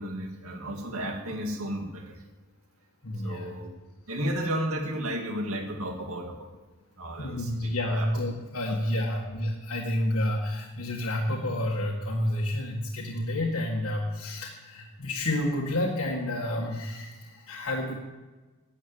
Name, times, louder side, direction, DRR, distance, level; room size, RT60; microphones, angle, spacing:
voice 1, 0.0-2.2 3.2-3.7 4.1-6.4 7.0-8.1 8.9-9.0, right 1 dB, 70° right, 2 dB, 2.4 m, -33 dB
voice 2, 3.0-3.6 7.2-17.9, left 1 dB, 75° left, -2 dB, 1.8 m, -30 dB
13.0 x 8.5 x 8.8 m, 1.2 s
head